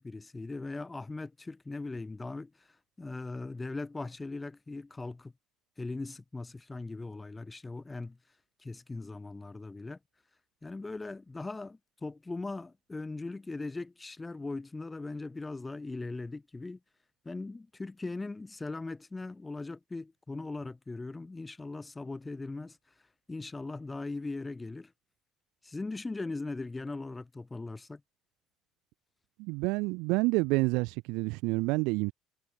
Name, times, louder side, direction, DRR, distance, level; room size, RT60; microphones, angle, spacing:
voice 1, 0.0-5.3 5.8-8.2 8.6-10.0 10.6-16.8 17.2-24.9 25.6-28.0, left 3 dB, 15° left, 4.3 m, -39 dB
voice 2, 29.4-32.1, right 26 dB, 80° right, 2.2 m, -28 dB
cardioid pair, 115°, 0 cm